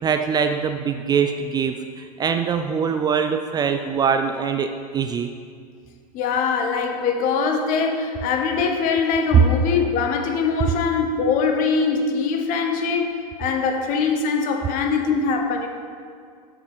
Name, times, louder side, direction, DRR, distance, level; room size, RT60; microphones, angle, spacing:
voice 1, 0.0-5.3, right 6 dB, 20° right, 7 dB, 0.4 m, -23 dB
voice 2, 6.1-15.7, left 5 dB, 45° left, 4 dB, 1.1 m, -22 dB
7.4 x 5.5 x 6.8 m, 2.2 s
figure-of-eight pair, 90°, 20 cm